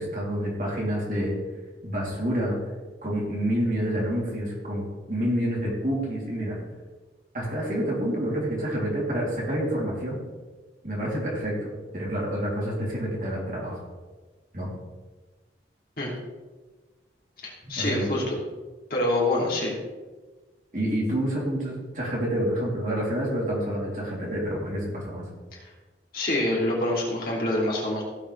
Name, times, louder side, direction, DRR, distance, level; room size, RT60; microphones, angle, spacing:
voice 1, 0.0-1.3 1.8-2.5 3.0-6.6 7.3-10.2 10.8-11.7 11.9-13.8 14.5-14.7 17.6-18.3 20.7-25.2, equal, 45° right, -5 dB, 3.3 m, -28 dB
voice 2, 17.4-18.3 18.9-19.7 25.5-25.7 26.1-28.0, left 1 dB, 50° left, -4 dB, 2.9 m, -26 dB
16.0 x 7.4 x 3.4 m, 1.3 s
head